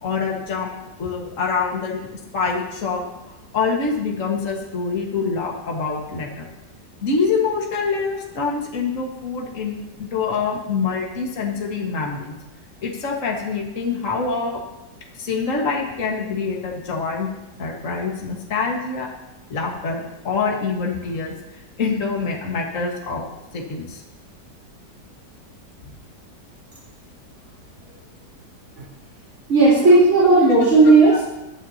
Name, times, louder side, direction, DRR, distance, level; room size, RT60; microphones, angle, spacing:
voice 1, 0.0-2.1 2.3-3.0 3.5-6.5 7.0-12.4 12.8-14.6 15.2-17.3 17.6-19.1 19.5-21.3 21.8-23.2 23.5-24.0 27.9-28.0, left 4 dB, 50° left, -1 dB, 2.1 m, -25 dB
voice 2, 29.5-31.2, right 3 dB, 45° right, -9 dB, 4.6 m, -13 dB
19.5 x 12.0 x 2.9 m, 0.99 s
omnidirectional pair, 1.8 m